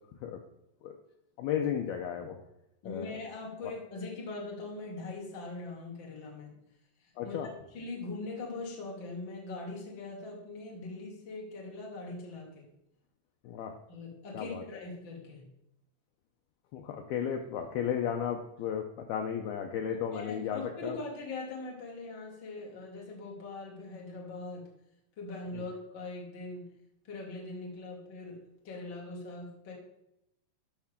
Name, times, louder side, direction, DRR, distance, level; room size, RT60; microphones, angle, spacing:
voice 1, 1.4-2.4 2.8-3.1 7.2-7.5 13.4-13.8 14.3-14.6 16.7-21.0 25.5-25.7, left 8 dB, 85° left, 4 dB, 2.1 m, -34 dB
voice 2, 2.8-6.6 7.2-7.4 7.7-12.7 13.9-15.5 20.1-24.7 25.2-26.8 27.0-29.7, left 3 dB, 40° left, -2 dB, 1.9 m, -41 dB
12.0 x 5.7 x 3.6 m, 0.84 s
omnidirectional pair, 5.1 m